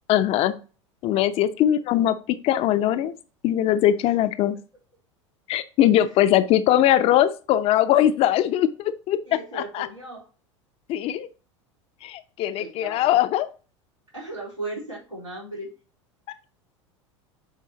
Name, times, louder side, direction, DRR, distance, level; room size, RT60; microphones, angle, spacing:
voice 1, 0.1-0.5 1.0-3.1 3.4-4.6 5.5-9.2 9.5-9.9 10.9-11.3 12.0-13.5, left 12 dB, 40° left, 12 dB, 0.6 m, -21 dB
voice 2, 9.3-10.3 12.6-13.2 14.1-15.7, right 2 dB, 90° right, -8 dB, 4.0 m, -36 dB
8.7 x 4.5 x 2.9 m, 0.36 s
figure-of-eight pair, 80°, 16 cm